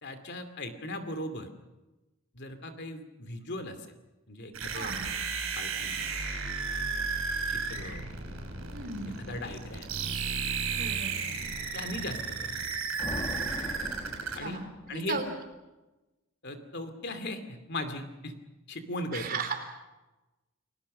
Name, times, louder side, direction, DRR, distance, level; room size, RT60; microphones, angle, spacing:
voice 1, 0.0-1.5 2.3-3.9 4.3-4.9 5.5-5.9 6.7-7.1 7.5-8.0 9.2-9.9 11.7-12.5 14.3-14.6 14.9-15.2 16.4-18.3 18.7-19.4, left 1 dB, 55° left, 8 dB, 2.5 m, -38 dB
sound 1, 4.5-14.4, right 5 dB, 75° right, 6.9 m, -33 dB
voice 2, 4.7-5.1 8.7-9.1 10.7-11.1 14.3-15.2 19.1-19.5, right 4 dB, 45° right, 5 dB, 4.0 m, -36 dB
sound 2, 13.0-15.3, left 1 dB, 25° left, 1.6 m, -40 dB
30.0 x 20.0 x 6.6 m, 1.1 s
head